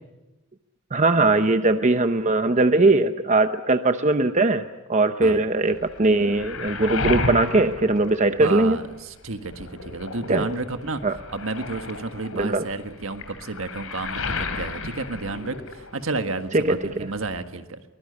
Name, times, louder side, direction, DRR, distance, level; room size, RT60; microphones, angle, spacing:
voice 1, 0.9-8.8 10.3-10.4 11.0-11.2 12.3-12.6 16.5-17.1, right 2 dB, 35° right, 9 dB, 0.8 m, -20 dB
Waves surf, 5.7-8.9 9.3-16.2 16.4-17.4, left 3 dB, 80° left, 3.1 m, -33 dB
voice 2, 8.4-11.0 11.3-17.8, right 3 dB, 65° right, 8 dB, 1.6 m, -31 dB
23.5 x 20.5 x 9.9 m, 1.1 s
head